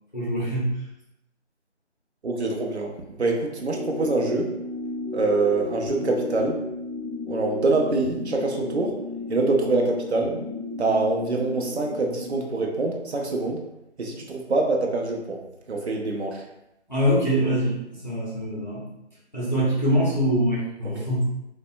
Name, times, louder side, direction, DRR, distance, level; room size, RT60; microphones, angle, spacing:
voice 1, 0.1-0.8 16.9-18.8 19.3-21.3, equal, 40° left, -8 dB, 0.7 m, -24 dB
voice 2, 2.2-2.9 3.2-4.5 5.1-6.6 7.3-8.9 9.3-10.3 10.8-13.6 14.0-15.4 15.7-16.4, right 3 dB, 65° right, 1 dB, 0.6 m, -25 dB
sound 1, 3.7-12.4, left 3 dB, 85° right, 1.0 m, -33 dB
4.1 x 2.1 x 2.4 m, 0.85 s
figure-of-eight pair, 180°, 36 cm